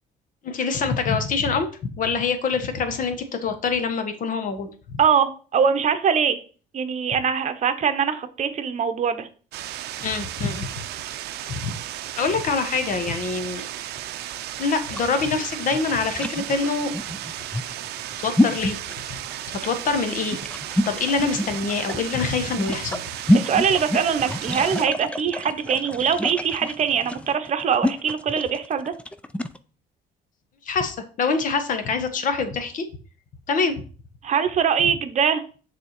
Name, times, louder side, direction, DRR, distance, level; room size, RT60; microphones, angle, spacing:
voice 1, 0.4-4.7 10.0-10.7 11.5-11.7 12.1-13.6 14.6-16.9 18.2-18.8 19.5-20.4 20.8-23.0 30.6-32.9 33.5-33.8, left 4 dB, 50° left, 1.2 m, -25 dB
voice 2, 5.0-6.4 6.7-9.3 23.3-28.9 34.2-35.4, right 7 dB, 45° right, 0.9 m, -22 dB
sound 1, 9.5-24.9, right 12 dB, 75° right, 0.5 m, -34 dB
sound 2, 14.8-29.6, left 1 dB, 5° left, 0.4 m, -27 dB
6.7 x 3.5 x 4.4 m
cardioid pair, 110°, 17 cm